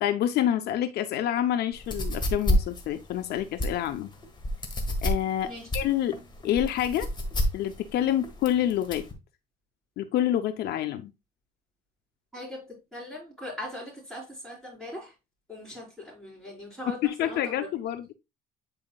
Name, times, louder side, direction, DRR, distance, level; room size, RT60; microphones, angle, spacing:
voice 1, 0.0-4.1 5.0-6.2 6.4-7.1 7.5-9.0 10.0-11.1 16.9-18.1, left 11 dB, 70° left, 0.6 m, -27 dB
sound 1, 1.7-9.1, left 1 dB, 25° left, 1.5 m, -29 dB
voice 2, 12.3-15.1 15.5-17.7, left 1 dB, ahead, 4.4 m, -40 dB
8.9 x 4.8 x 2.3 m
cardioid pair, 110°, 17 cm